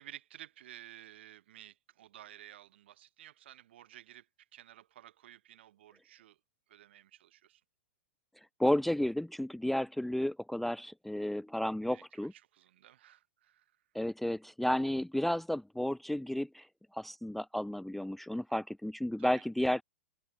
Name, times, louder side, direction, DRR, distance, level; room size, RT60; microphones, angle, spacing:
voice 1, 0.0-4.3 4.5-6.4 6.7-7.6 11.9-13.7 19.2-19.4, right 12 dB, 65° right, 2.4 m, -54 dB
voice 2, 8.6-12.3 13.9-16.7 16.9-19.8, left 1 dB, ahead, 0.4 m, -32 dB
figure-of-eight pair, 100°, 7 cm